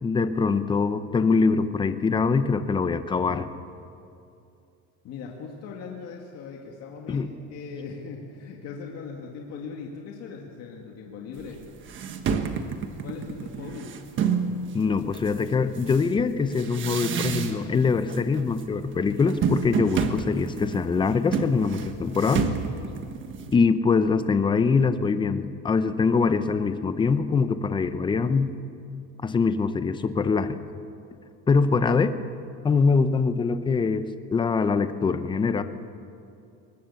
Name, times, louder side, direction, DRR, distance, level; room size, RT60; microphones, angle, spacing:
voice 1, 0.0-3.5 7.1-7.3 14.7-22.5 23.5-28.6 29.2-30.6 31.5-32.1 32.6-35.6, left 4 dB, 15° left, 11 dB, 0.7 m, -23 dB
voice 2, 5.0-11.6 13.0-14.0 31.7-31.8, left 5 dB, 50° left, 0 dB, 2.1 m, -39 dB
sound 1, 11.4-11.5 11.8-14.5 15.1-17.8 18.1-18.6 18.9-23.6, right 6 dB, 35° right, 1.4 m, -29 dB
22.0 x 20.0 x 7.0 m, 2.6 s
cardioid pair, 160°, 34 cm